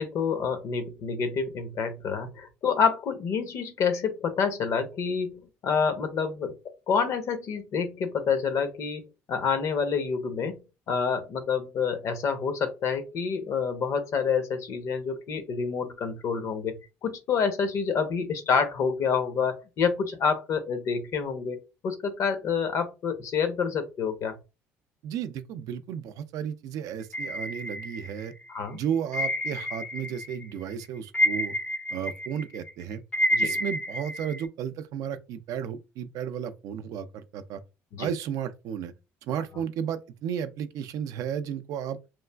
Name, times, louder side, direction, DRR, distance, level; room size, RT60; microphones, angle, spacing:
voice 1, 0.0-5.3 5.6-6.5 6.9-10.6 10.9-16.7 17.0-21.6 21.8-24.3 28.5-28.8 33.3-33.5 37.9-38.1, left 6 dB, 60° left, 0.7 m, -28 dB
voice 2, 25.0-28.3 28.7-31.6 31.9-33.0 33.4-37.6 38.0-38.9 39.3-42.0, right 8 dB, 70° right, 0.3 m, -33 dB
sound 1, 27.1-28.4 29.1-30.4 30.7-34.5, equal, 20° left, 0.4 m, -29 dB
3.1 x 2.4 x 2.2 m
supercardioid pair, 75°, 6 cm